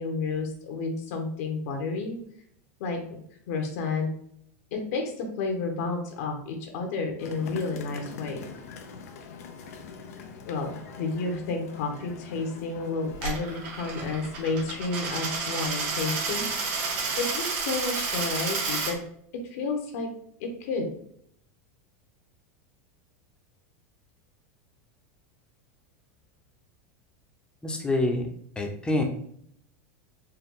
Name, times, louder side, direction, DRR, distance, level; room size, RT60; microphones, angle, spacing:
voice 1, 0.0-2.2 2.8-3.2 3.5-4.1 4.7-8.4 10.5-16.5 17.2-19.0 19.3-20.1 20.4-20.9, left 3 dB, 70° left, 3 dB, 1.1 m, -31 dB
sound 1, 7.2-17.2, left 5 dB, 90° left, 0.6 m, -44 dB
Coin (dropping), 13.1-18.9, right 4 dB, 60° right, 1.5 m, -30 dB
voice 2, 27.6-28.2 28.6-29.0, left 2 dB, 10° left, 2 dB, 0.8 m, -26 dB
4.5 x 2.3 x 3.7 m, 0.66 s
supercardioid pair, 130°, 8 cm